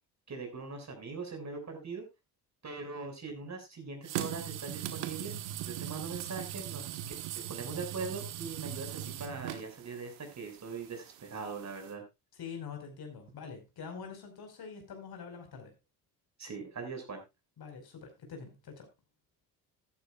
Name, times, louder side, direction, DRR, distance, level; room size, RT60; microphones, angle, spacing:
voice 1, 0.3-2.0 2.6-5.3 5.6-7.0 7.5-12.0 16.4-17.2, right 4 dB, 35° right, 4 dB, 6.1 m, -41 dB
sound 1, 4.0-11.9, right 12 dB, 75° right, 1.5 m, -40 dB
voice 2, 12.3-15.7 17.6-18.9, left 6 dB, 50° left, 4 dB, 5.3 m, -45 dB
14.5 x 12.0 x 2.4 m, 0.24 s
hypercardioid pair, 60°, 46 cm